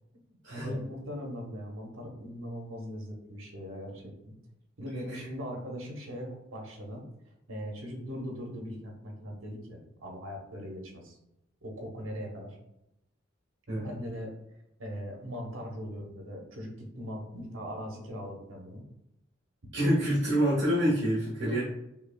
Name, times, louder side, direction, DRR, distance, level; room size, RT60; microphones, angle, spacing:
voice 1, 0.5-4.4 4.8-7.0 7.5-11.2 11.6-12.6 13.8-14.3 14.8-18.8 21.4-21.6, equal, 75° right, 0 dB, 1.0 m, -40 dB
voice 2, 19.7-21.6, equal, 55° right, -8 dB, 1.3 m, -26 dB
5.8 x 2.4 x 2.3 m, 0.84 s
head